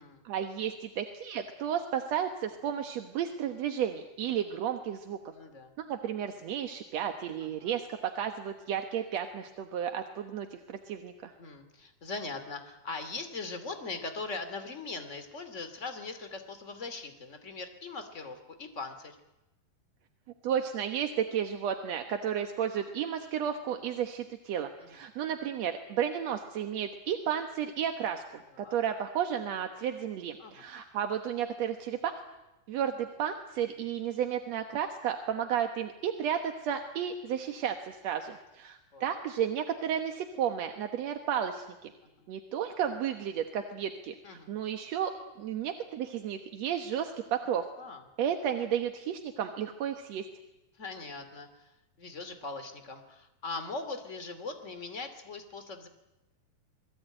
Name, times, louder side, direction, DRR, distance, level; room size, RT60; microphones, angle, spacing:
voice 1, 0.2-5.2 5.9-11.3 20.4-32.1 32.7-41.9 42.3-45.1 45.4-47.7 48.2-50.3, right 9 dB, 60° right, 6 dB, 2.0 m, -33 dB
voice 2, 5.3-5.7 7.4-7.7 11.4-19.2 24.8-25.0 28.5-28.8 30.4-30.7 38.9-39.2 42.2-42.3 44.2-44.5 47.8-48.0 50.8-51.7 52.0-55.9, left 3 dB, 25° left, 9 dB, 2.3 m, -41 dB
27.5 x 20.5 x 9.0 m, 0.98 s
omnidirectional pair, 4.3 m